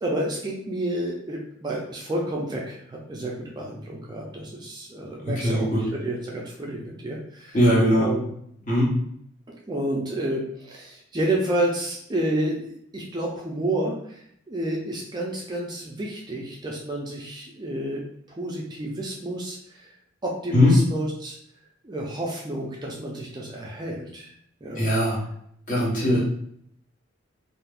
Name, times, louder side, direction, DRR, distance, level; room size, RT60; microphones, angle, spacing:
voice 1, 0.0-7.6 7.9-8.3 9.7-18.0 18.3-19.9 20.2-21.4 21.8-24.3 24.6-24.9 26.0-26.2, right 1 dB, 20° right, -2 dB, 0.4 m, -30 dB
voice 2, 5.4-5.8 7.5-8.1 8.7-8.9 20.5-20.7 24.8-25.2 25.7-26.2, left 1 dB, 40° left, -5 dB, 1.1 m, -20 dB
2.5 x 2.4 x 3.4 m, 0.69 s
head